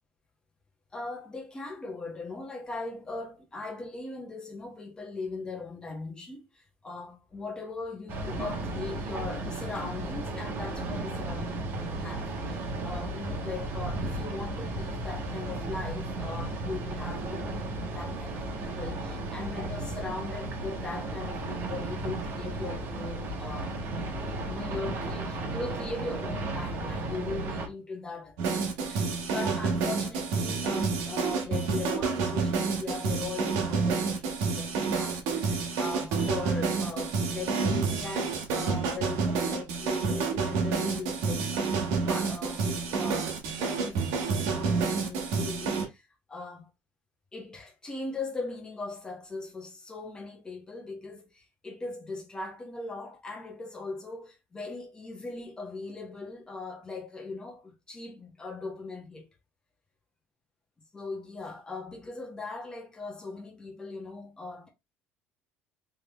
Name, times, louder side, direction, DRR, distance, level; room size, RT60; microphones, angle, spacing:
voice 1, 0.9-23.7 24.4-46.7 47.3-59.3 60.9-64.7, left 3 dB, 15° left, 1.4 m, -39 dB
sound 1, 8.1-27.7, right 2 dB, 50° right, 1.2 m, -34 dB
sound 2, 28.4-45.8, right 4 dB, 80° right, 1.3 m, -29 dB
3.6 x 3.2 x 3.0 m
cardioid pair, 120°, 5 cm